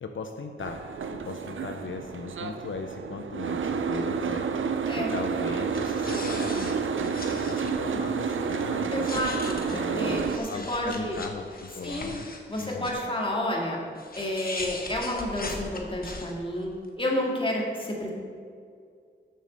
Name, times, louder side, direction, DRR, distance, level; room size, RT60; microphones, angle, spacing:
voice 1, 0.0-4.5 4.9-9.1 9.6-12.3 12.6-13.0, left 4 dB, 80° left, 5 dB, 0.5 m, -38 dB
Boat Water vehicle, 0.6-10.4, right 6 dB, 85° right, 0.5 m, -30 dB
sound 1, 5.7-7.7 8.2-8.3 8.9-12.9 13.9-16.6, left 2 dB, 50° left, 1.1 m, -39 dB
voice 2, 8.9-11.2 11.8-12.1 12.5-13.8 14.2-18.1, left 1 dB, 25° left, -2 dB, 2.2 m, -30 dB
6.6 x 6.5 x 6.5 m, 2.2 s
wide cardioid pair, 60°, 20 cm